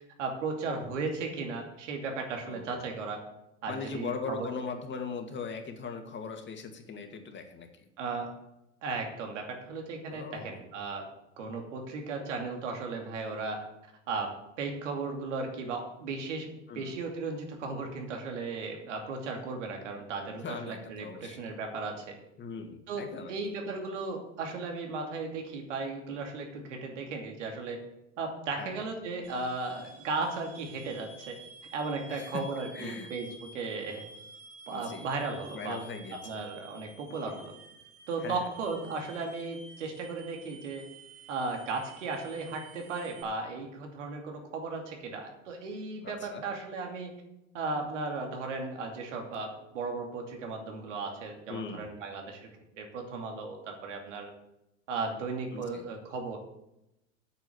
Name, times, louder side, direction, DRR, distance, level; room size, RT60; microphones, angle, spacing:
voice 1, 0.2-3.2 3.6-4.5 8.0-8.3 8.8-11.0 11.4-13.6 14.1-14.3 14.6-22.0 22.9-27.8 28.2-31.3 31.7-34.0 34.7-35.8 36.1-37.5 38.1-40.8 41.3-47.1 47.5-52.4 52.8-54.3 54.9-56.4, right 3 dB, 85° right, 2 dB, 2.6 m, -36 dB
voice 2, 2.5-2.9 3.7-7.7 10.1-10.6 16.7-17.0 20.4-21.5 22.4-23.3 28.6-28.8 32.1-32.4 32.7-33.1 34.7-35.1 35.5-36.4 38.2-38.4 46.0-46.4 51.5-51.9 55.5-55.8, left 5 dB, 30° left, 5 dB, 2.2 m, -40 dB
sound 1, 29.2-43.2, right 3 dB, 60° right, 4.5 m, -51 dB
8.7 x 7.1 x 7.9 m, 0.87 s
hypercardioid pair, 95°, 35 cm